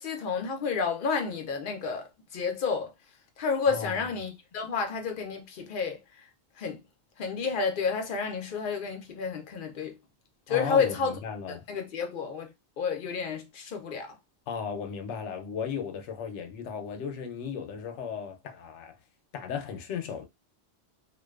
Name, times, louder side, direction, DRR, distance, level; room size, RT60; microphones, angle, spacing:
voice 1, 0.0-2.9 3.4-6.3 6.6-6.8 7.2-10.0 10.5-11.2 11.5-12.5 12.8-14.2, left 5 dB, 55° left, 0.7 m, -30 dB
voice 2, 3.7-4.0 10.5-11.6 14.5-18.9 19.3-20.3, left 6 dB, 90° left, 0.9 m, -35 dB
2.4 x 2.2 x 2.3 m
omnidirectional pair, 1.2 m